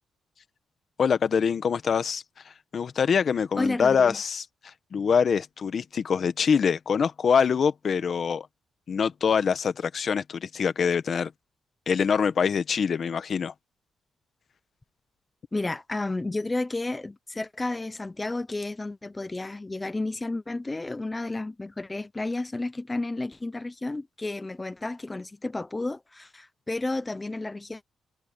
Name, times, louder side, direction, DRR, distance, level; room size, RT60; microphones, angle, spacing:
voice 1, 1.0-2.2 2.7-8.5 8.9-11.3 11.9-13.5, left 6 dB, 50° left, 1.2 m, -24 dB
voice 2, 3.6-4.2 15.5-27.8, left 2 dB, 15° left, 0.9 m, -32 dB
cardioid pair, 115°, 0 cm